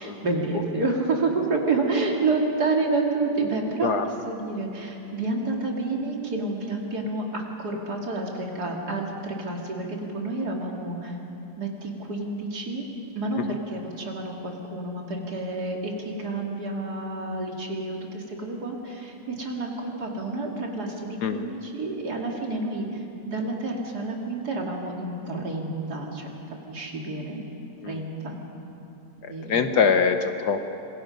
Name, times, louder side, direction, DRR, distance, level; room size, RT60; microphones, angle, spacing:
voice 1, 0.0-3.9 4.2-11.2 11.6-12.9 13.1-26.3 26.7-27.4 27.9-28.4 29.2-29.6, right 3 dB, 55° right, 0 dB, 3.0 m, -29 dB
voice 2, 29.2-30.6, left 6 dB, 65° left, 8 dB, 1.4 m, -23 dB
26.5 x 22.5 x 5.3 m, 2.9 s
omnidirectional pair, 2.0 m